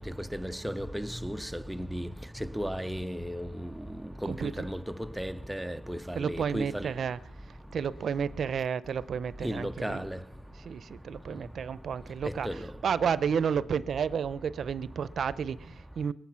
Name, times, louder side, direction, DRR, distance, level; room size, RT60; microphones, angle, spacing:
voice 1, 0.0-2.1 2.4-3.7 4.2-6.9 9.4-10.2 12.2-12.6, equal, 5° right, 0.5 m, -35 dB
voice 2, 6.1-7.2 7.7-10.0 10.6-12.5 12.8-16.1, right 7 dB, 55° right, 0.6 m, -31 dB
21.5 x 9.7 x 5.8 m
cardioid pair, 90°, 0 cm